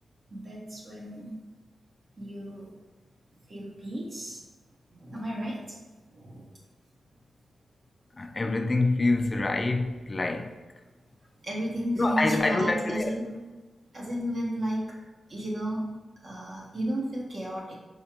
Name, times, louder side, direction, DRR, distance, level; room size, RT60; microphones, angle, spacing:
voice 1, 0.3-1.4 2.2-2.7 3.5-4.4 4.9-5.8 6.1-6.5 11.4-13.5 13.9-15.0 15.3-15.9 16.2-17.8, equal, 50° right, 0.9 m, -33 dB
voice 2, 8.2-10.6 12.0-13.1, left 2 dB, 30° left, 0.3 m, -26 dB
4.8 x 3.0 x 2.9 m
cardioid pair, 95°, 0 cm